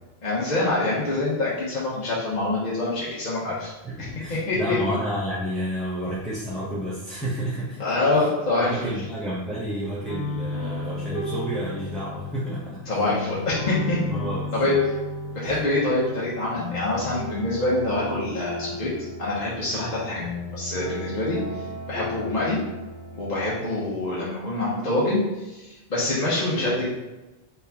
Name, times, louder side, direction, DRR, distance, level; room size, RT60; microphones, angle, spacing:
voice 1, 0.2-3.7 4.3-4.8 7.8-8.9 12.9-14.0 14.5-14.8 15.3-18.9 19.2-20.2 20.5-22.6 23.1-26.8, left 2 dB, 45° left, -7 dB, 0.9 m, -25 dB
voice 2, 3.8-7.8 8.1-8.3 8.6-12.8 14.1-14.7 15.4-15.6, equal, ahead, -11 dB, 0.6 m, -31 dB
sound 1, 10.1-23.4, left 2 dB, 90° left, 1.2 m, -34 dB
4.1 x 3.4 x 2.8 m, 1.1 s
omnidirectional pair, 1.1 m